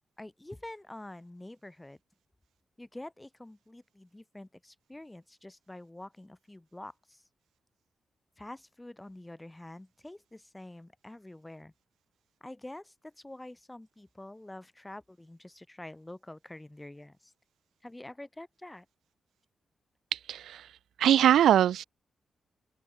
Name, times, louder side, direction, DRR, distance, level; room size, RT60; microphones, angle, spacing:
voice 1, 0.2-2.0 2.8-7.2 8.4-11.7 12.4-17.3 17.8-18.9, left 1 dB, 15° left, 2.5 m, -47 dB
voice 2, 20.1-20.7 21.0-21.8, right 11 dB, 85° right, 0.4 m, -22 dB
open air
cardioid pair, 60°, 0 cm